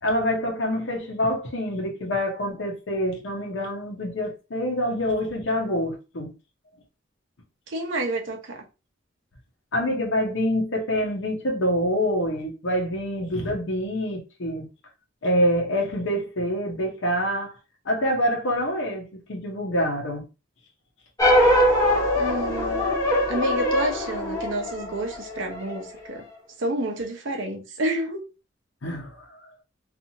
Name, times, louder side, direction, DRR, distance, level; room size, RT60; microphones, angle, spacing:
voice 1, 0.0-6.3 9.7-14.7 15.2-17.5 17.9-20.2 28.8-29.5, equal, 70° left, 0.7 m, -26 dB
voice 2, 7.7-8.6 22.2-22.9 23.3-26.2 26.6-28.2, right 1 dB, 70° right, 0.7 m, -29 dB
sound 1, 21.2-25.8, left 1 dB, 20° left, 0.8 m, -22 dB
2.7 x 2.4 x 2.7 m
head